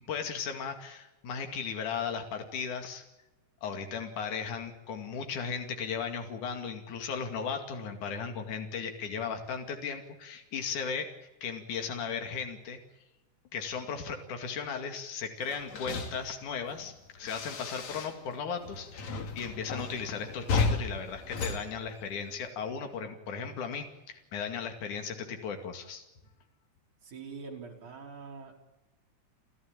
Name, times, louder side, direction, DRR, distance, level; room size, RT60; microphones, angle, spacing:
voice 1, 0.1-3.0 3.6-11.1 11.4-12.8 13.5-26.0, left 6 dB, 80° left, 5 dB, 3.8 m, -36 dB
sound 1, 15.4-18.4 18.6-22.5, left 4 dB, 65° left, 3.5 m, -34 dB
voice 2, 27.0-28.5, right 5 dB, 75° right, 1 dB, 5.9 m, -44 dB
30.0 x 14.0 x 9.0 m, 1.0 s
omnidirectional pair, 3.5 m